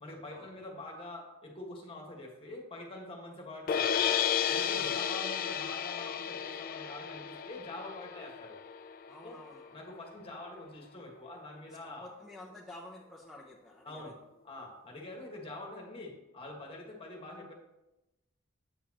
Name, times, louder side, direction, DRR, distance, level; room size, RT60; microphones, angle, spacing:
voice 1, 0.0-4.1 4.5-8.6 9.2-9.4 9.7-12.1 13.8-14.1 14.4-17.5, left 2 dB, 25° left, 0 dB, 1.6 m, -45 dB
sound 1, 3.7-9.8, left 8 dB, 45° left, 0.3 m, -33 dB
voice 2, 4.7-5.2 9.1-9.8 11.7-14.1, left 1 dB, ahead, -2 dB, 0.6 m, -51 dB
8.5 x 7.0 x 2.9 m, 0.96 s
head